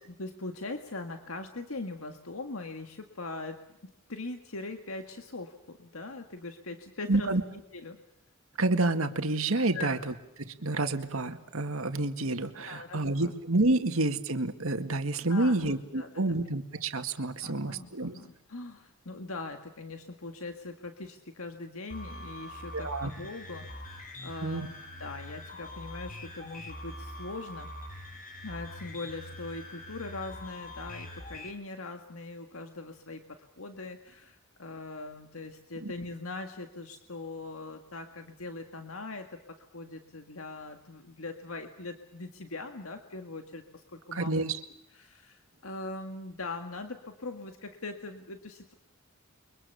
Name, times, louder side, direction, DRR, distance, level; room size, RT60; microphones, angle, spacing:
voice 1, 0.1-7.3 7.7-8.0 9.7-10.0 12.7-13.3 15.3-16.3 17.4-27.7 28.4-44.5 44.9-48.7, left 3 dB, 85° left, 6 dB, 1.9 m, -41 dB
voice 2, 7.1-7.4 8.6-10.1 10.4-18.2 22.7-23.1 24.4-24.7 35.8-35.9 44.1-44.6, right 2 dB, 80° right, 8 dB, 2.0 m, -29 dB
sound 1, 21.9-31.5, left 1 dB, 40° left, 5.5 m, -43 dB
29.5 x 24.0 x 7.0 m, 0.80 s
head